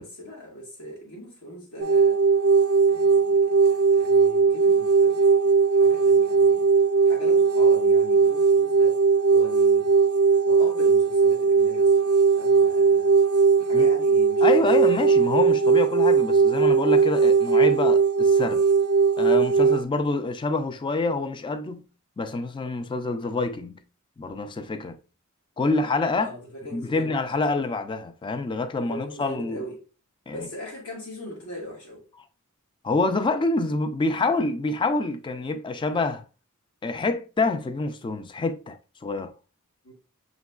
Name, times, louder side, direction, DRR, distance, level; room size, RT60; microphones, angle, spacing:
voice 1, 0.0-2.2 2.9-5.2 5.7-6.7 7.1-9.0 9.3-9.9 10.4-11.9 12.4-13.2 13.6-15.4 26.2-27.2 28.7-29.8 30.3-32.0 39.8-39.9, left 1 dB, 80° left, 1.8 m, -40 dB
sound 1, 1.8-19.8, right 5 dB, 75° right, 0.4 m, -19 dB
voice 2, 14.4-18.6 19.2-21.8 22.2-23.8 24.2-25.0 25.6-26.3 26.7-29.6 30.3-30.5 32.8-36.2 36.8-39.3, left 3 dB, 20° left, 0.3 m, -27 dB
6.2 x 3.0 x 2.3 m
head